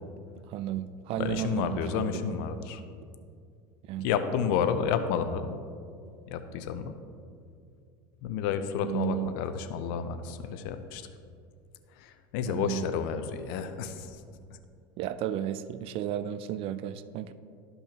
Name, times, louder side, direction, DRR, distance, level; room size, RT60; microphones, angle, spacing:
voice 1, 0.5-2.3 3.9-4.1 8.8-9.4 12.5-12.9 15.0-17.3, right 11 dB, 55° right, 13 dB, 0.4 m, -33 dB
voice 2, 1.2-2.8 4.0-5.6 6.3-6.9 8.2-11.0 12.0-14.2, left 7 dB, 70° left, 9 dB, 0.6 m, -31 dB
12.0 x 5.5 x 2.9 m, 2.3 s
hypercardioid pair, 95°, 12 cm